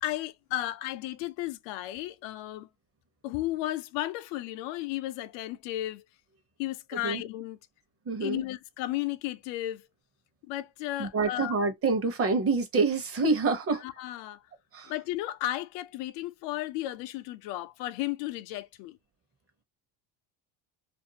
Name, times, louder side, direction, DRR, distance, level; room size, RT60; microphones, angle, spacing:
voice 1, 0.0-2.7 3.2-6.0 6.6-7.6 8.2-9.9 10.5-11.6 13.8-14.4 14.9-19.0, left 15 dB, 70° left, 0.5 m, -34 dB
voice 2, 8.1-8.4 11.0-13.8 14.7-14.9, right 4 dB, 30° right, 0.9 m, -27 dB
2.6 x 2.4 x 2.7 m
supercardioid pair, 115°, 45 cm